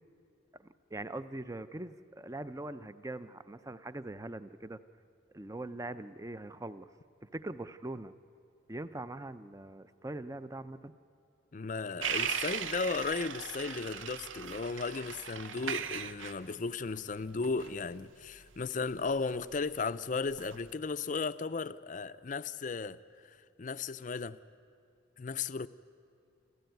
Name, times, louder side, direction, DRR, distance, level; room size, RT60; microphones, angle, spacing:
voice 1, 0.6-4.8 5.3-6.9 7.2-8.1 8.7-10.9, right 2 dB, 15° right, 13 dB, 0.5 m, -42 dB
voice 2, 11.5-23.0 23.2-24.4 25.2-25.7, left 4 dB, 40° left, 14 dB, 0.5 m, -35 dB
sound 1, 12.0-19.8 20.3-20.7, right 7 dB, 85° right, 0.8 m, -38 dB
28.0 x 14.5 x 9.2 m, 2.5 s
head